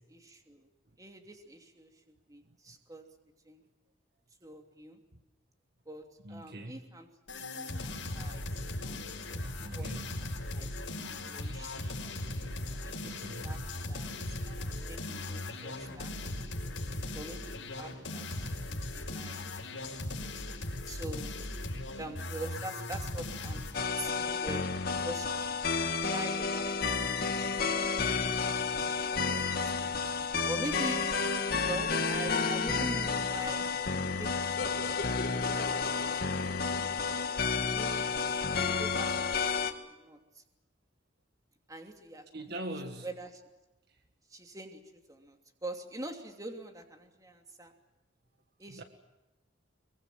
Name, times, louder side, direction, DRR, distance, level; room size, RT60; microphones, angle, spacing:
voice 1, 0.1-0.7 1.0-1.9 2.3-3.1 3.4-3.6 4.4-5.0 5.9-8.4 8.8-9.9 10.5-11.9 12.8-13.6 13.9-14.1 14.5-16.2 17.1-19.5 20.8-21.4 22.0-25.3 25.7-26.7 27.1-27.9 28.7-29.9 30.4-31.1 31.6-33.8 34.2-34.8 35.1-36.3 37.5-38.1 38.5-40.2 41.7-42.5 43.0-43.4 44.3-44.8 45.1-47.7 48.6-48.8, right 1 dB, 20° right, 4 dB, 2.9 m, -44 dB
voice 2, 6.2-6.8 9.6-10.1 10.7-10.9 12.9-13.5 42.3-43.1 48.7-48.8, right 1 dB, 55° right, 6 dB, 1.9 m, -42 dB
sound 1, 7.3-23.8, left 2 dB, 75° left, 5.6 m, -38 dB
sound 2, 23.7-39.7, left 5 dB, 50° left, 1.9 m, -31 dB
24.0 x 24.0 x 7.6 m, 1.0 s
head